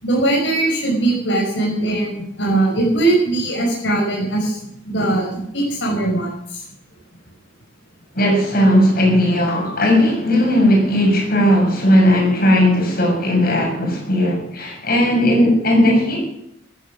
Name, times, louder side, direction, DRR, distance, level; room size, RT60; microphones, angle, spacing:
voice 1, 0.0-4.6 4.8-6.6, right 2 dB, 80° left, -2 dB, 5.6 m, -20 dB
voice 2, 8.1-16.2, equal, 55° left, 1 dB, 7.0 m, -16 dB
15.0 x 14.0 x 6.4 m, 0.79 s
head